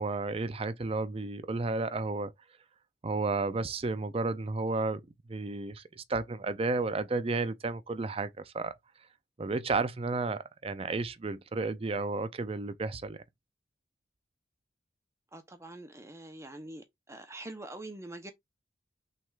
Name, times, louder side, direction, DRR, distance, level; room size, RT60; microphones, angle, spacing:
voice 1, 0.0-2.3 3.0-5.0 5.3-8.8 9.4-13.2, right 3 dB, 30° right, 0.5 m, -32 dB
voice 2, 15.3-18.3, right 1 dB, 15° right, 0.9 m, -44 dB
6.0 x 3.4 x 2.5 m
head